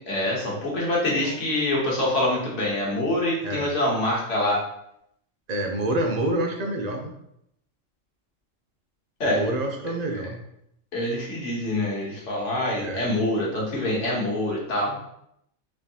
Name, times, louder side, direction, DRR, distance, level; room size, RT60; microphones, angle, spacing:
voice 1, 0.1-4.6 9.2-9.4 10.9-15.1, left 1 dB, 70° left, -3 dB, 1.3 m, -25 dB
voice 2, 5.5-7.1 9.2-10.4 12.8-13.0, right 1 dB, 50° right, 1 dB, 0.5 m, -27 dB
4.5 x 2.6 x 2.7 m, 0.76 s
omnidirectional pair, 1.3 m